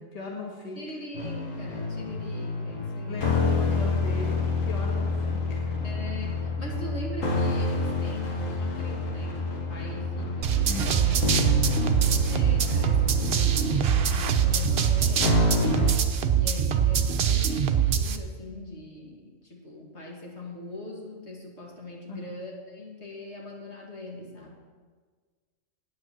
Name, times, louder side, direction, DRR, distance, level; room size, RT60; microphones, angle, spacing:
voice 1, 0.0-0.8 3.1-5.7 10.6-11.9 22.1-22.3, left 3 dB, 30° left, -1 dB, 1.5 m, -38 dB
voice 2, 0.7-3.3 5.8-11.1 12.2-15.7 16.3-24.6, left 1 dB, 55° left, -2 dB, 2.6 m, -41 dB
sound 1, 1.1-16.0, left 2 dB, 80° left, 1.9 m, -28 dB
sound 2, 10.4-18.2, right 8 dB, 55° right, 0.9 m, -24 dB
9.2 x 8.8 x 7.5 m, 1.5 s
omnidirectional pair, 1.3 m